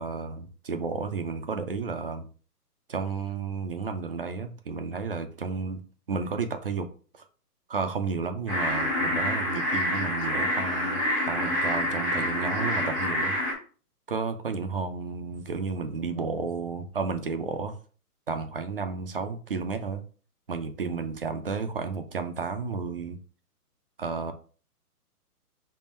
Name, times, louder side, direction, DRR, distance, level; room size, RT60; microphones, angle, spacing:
voice 1, 0.0-2.3 2.9-5.8 6.1-6.9 7.1-7.2 7.7-13.4 14.1-17.8 18.3-20.0 20.5-23.2 24.0-24.3, right 4 dB, 40° right, 7 dB, 0.4 m, -32 dB
sound 1, 8.5-13.5, left 1 dB, ahead, 0.6 m, -27 dB
5.4 x 2.2 x 4.2 m, 0.40 s
hypercardioid pair, 155°, 47 cm